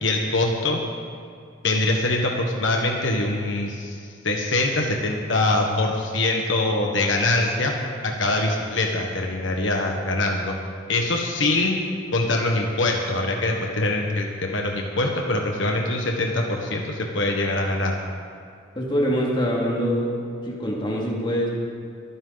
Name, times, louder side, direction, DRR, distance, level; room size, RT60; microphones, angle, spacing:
voice 1, 0.0-0.8 1.6-4.0 4.2-7.7 8.0-10.5 10.9-11.8 12.1-17.9, left 2 dB, 70° left, 1 dB, 1.4 m, -23 dB
voice 2, 18.8-20.1 20.4-21.5, equal, 25° left, -3 dB, 2.5 m, -24 dB
23.5 x 10.0 x 4.1 m, 2.3 s
head